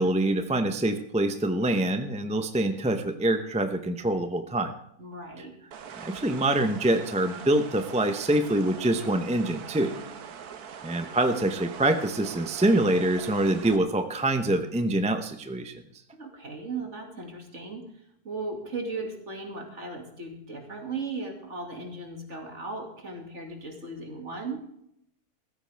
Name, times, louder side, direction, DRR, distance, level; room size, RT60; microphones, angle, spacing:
voice 1, 0.0-4.7 5.9-9.9 10.8-15.7, right 1 dB, 5° right, 7 dB, 0.5 m, -25 dB
voice 2, 5.0-5.5 9.9-10.0 16.1-17.8 18.2-24.6, right 3 dB, 50° right, 2 dB, 2.6 m, -37 dB
sound 1, 5.7-13.8, right 7 dB, 75° right, 1.5 m, -42 dB
15.5 x 13.5 x 3.5 m, 0.75 s
omnidirectional pair, 1.6 m